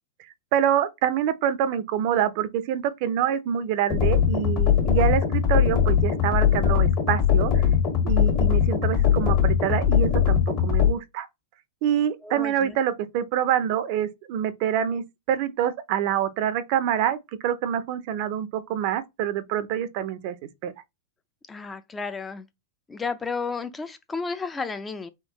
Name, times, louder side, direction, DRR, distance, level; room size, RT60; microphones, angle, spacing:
voice 1, 0.5-7.7 8.0-11.3 11.8-20.3 20.6-20.7, right 10 dB, 55° right, 0.6 m, -26 dB
sound 1, 3.9-10.9, left 8 dB, 45° left, 1.6 m, -21 dB
voice 2, 12.2-12.8 21.5-22.5 22.9-25.1, left 4 dB, 15° left, 0.5 m, -32 dB
3.6 x 3.1 x 3.0 m
hypercardioid pair, 105°, 0 cm